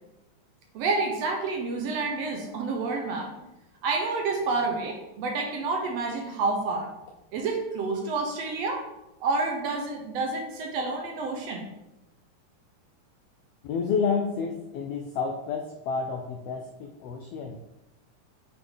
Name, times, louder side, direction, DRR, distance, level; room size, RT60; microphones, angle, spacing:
voice 1, 0.7-3.5 3.8-6.9 7.3-8.8 9.2-11.6, right 3 dB, 70° right, 2 dB, 1.7 m, -29 dB
voice 2, 13.6-17.6, left 5 dB, 85° left, 4 dB, 1.4 m, -30 dB
7.8 x 3.4 x 3.7 m, 0.92 s
omnidirectional pair, 3.3 m